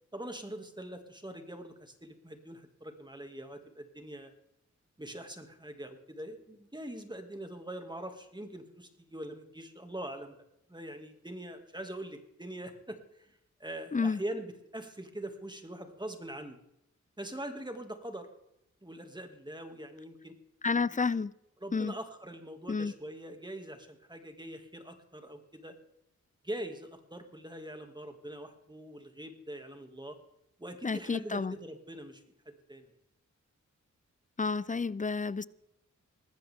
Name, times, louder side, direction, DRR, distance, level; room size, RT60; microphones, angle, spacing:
voice 1, 0.1-4.3 5.0-10.3 10.7-13.3 13.6-16.6 17.2-18.3 18.8-20.3 20.7-20.9 21.6-25.7 26.4-30.2 30.6-32.9, right 1 dB, 15° right, 2.3 m, -43 dB
voice 2, 20.6-21.3 21.7-21.9 22.7-22.9 30.8-31.5 34.4-35.5, left 4 dB, 25° left, 0.5 m, -30 dB
19.0 x 14.5 x 3.7 m
cardioid pair, 50°, 30 cm